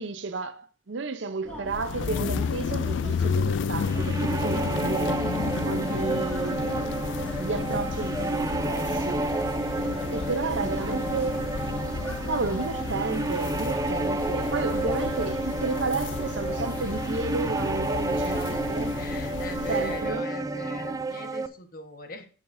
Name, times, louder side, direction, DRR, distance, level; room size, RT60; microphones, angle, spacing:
voice 1, 0.0-5.2 5.6-9.3 10.1-11.6 12.3-18.9 19.7-20.3, right 4 dB, 65° right, 0.7 m, -32 dB
sound 1, 1.4-18.3, equal, 10° left, 2.4 m, -41 dB
sound 2, 1.7-20.2, left 6 dB, 65° left, 0.3 m, -32 dB
sound 3, 3.8-21.5, right 2 dB, 15° right, 0.4 m, -30 dB
voice 2, 8.8-9.5 18.2-18.7 19.0-22.3, left 2 dB, 45° left, 1.1 m, -41 dB
15.5 x 5.8 x 2.6 m
head